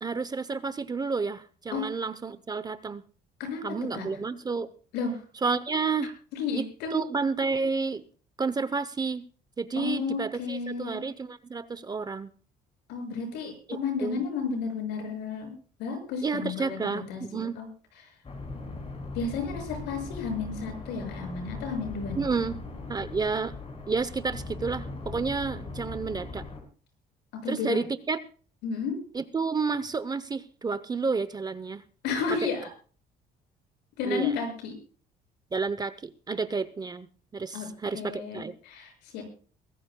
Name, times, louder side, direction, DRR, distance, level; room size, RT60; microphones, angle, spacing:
voice 1, 0.0-3.0 3.6-4.7 5.4-6.1 6.5-6.6 6.9-8.1 8.4-9.2 9.6-12.3 14.0-14.2 16.2-17.5 22.1-22.6 22.9-23.5 23.9-26.4 27.5-28.2 29.1-31.8 34.1-34.3 35.5-37.1 37.3-38.5, right 4 dB, 25° right, 14 dB, 0.7 m, -30 dB
voice 2, 6.3-7.0 9.7-11.0 12.9-15.5 15.8-16.8 17.1-17.7 18.0-18.1 19.1-22.3 27.4-27.8 28.6-29.0 32.0-32.7 34.0-34.7 37.5-37.7 37.9-39.2, left 5 dB, 90° left, 4 dB, 6.5 m, -32 dB
sound 1, 18.2-26.6, left 3 dB, 35° left, 4.9 m, -39 dB
23.0 x 15.0 x 2.3 m, 0.40 s
cardioid pair, 110°, 17 cm